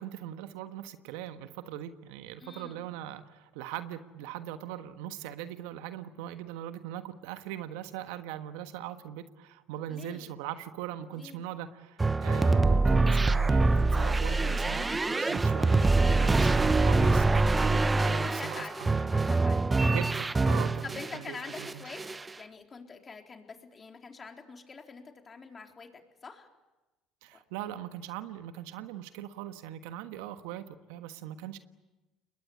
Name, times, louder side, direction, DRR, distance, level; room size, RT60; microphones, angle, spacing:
voice 1, 0.0-19.1 19.9-21.8 27.2-31.6, right 11 dB, 75° right, 10 dB, 1.4 m, -40 dB
voice 2, 2.4-3.0 9.9-10.3 11.1-11.5 16.2-16.6 18.2-18.8 19.1-19.7 20.8-22.0 22.4-26.5 27.3-27.4, left 4 dB, 30° left, 3 dB, 3.9 m, -45 dB
sound 1, 12.0-21.2 21.5-22.3, right 3 dB, 20° right, 0.9 m, -25 dB
28.5 x 21.5 x 8.7 m, 1.1 s
hypercardioid pair, 70°, 0 cm